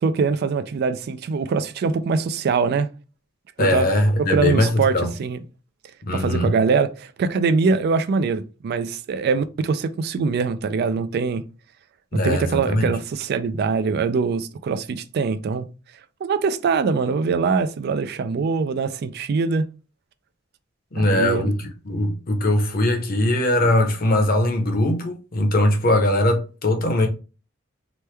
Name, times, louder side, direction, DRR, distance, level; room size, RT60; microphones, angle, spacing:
voice 1, 0.0-2.9 3.6-3.9 4.3-5.4 6.1-11.4 12.2-15.7 16.2-19.7 21.0-21.5, right 5 dB, 55° right, 0.3 m, -23 dB
voice 2, 3.6-5.1 6.0-6.5 12.1-12.9 20.9-21.5 21.8-27.1, left 1 dB, 50° left, 0.7 m, -20 dB
3.0 x 2.1 x 3.3 m
head